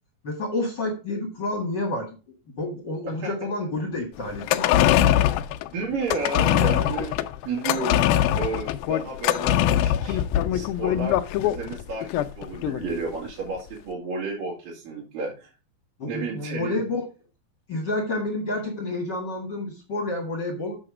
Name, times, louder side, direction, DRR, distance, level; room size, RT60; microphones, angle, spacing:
voice 1, 0.2-2.1 2.6-4.9 16.0-17.0 17.7-20.8, left 2 dB, 40° left, 3 dB, 1.7 m, -29 dB
sound 1, 4.3-13.0 13.3-13.4, left 12 dB, 80° left, 2.3 m, -22 dB
voice 2, 5.7-7.1 7.5-8.1 8.3-10.2 10.5-15.5 16.1-16.8, right 4 dB, 65° right, -5 dB, 4.2 m, -32 dB
7.7 x 6.9 x 4.9 m, 0.31 s
omnidirectional pair, 4.4 m